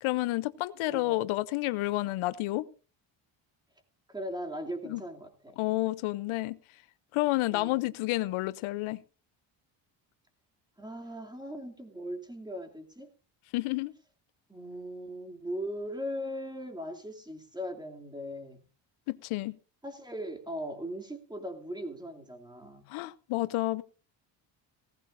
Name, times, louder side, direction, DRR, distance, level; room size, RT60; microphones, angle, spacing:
voice 1, 0.0-2.7 4.9-5.0 5.6-6.6 7.1-9.0 13.5-13.9 19.1-19.6 22.9-23.8, left 19 dB, 85° left, 0.7 m, -30 dB
voice 2, 0.9-1.2 4.1-5.6 7.5-7.8 10.8-13.1 14.5-18.6 19.8-22.9, equal, 10° right, 2.7 m, -39 dB
17.5 x 15.5 x 2.6 m
cardioid pair, 105°, 48 cm